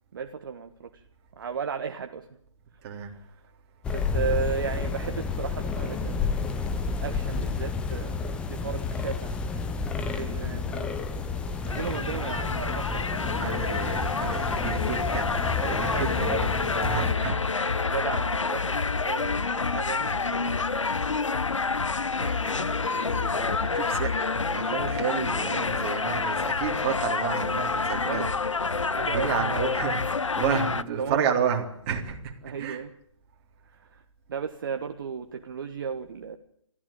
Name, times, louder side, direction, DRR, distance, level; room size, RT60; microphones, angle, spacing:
voice 1, 0.1-1.0 1.4-2.3 3.0-3.2 3.9-9.4 10.0-13.7 15.3-16.5 17.0-17.3 17.8-20.6 27.8-28.4 28.9-29.9 31.0-31.3 32.4-32.9 33.7-34.0 34.3-36.4, right 6 dB, 45° right, 6 dB, 1.4 m, -35 dB
sound 1, 3.8-17.1, left 5 dB, 5° left, 1.0 m, -31 dB
sound 2, 11.7-30.8, left 4 dB, 75° left, 1.1 m, -28 dB
voice 2, 12.8-17.7 22.2-28.3 29.0-32.8, right 7 dB, 20° right, 2 dB, 3.6 m, -32 dB
24.5 x 15.0 x 8.8 m, 0.72 s
figure-of-eight pair, 145°, 16 cm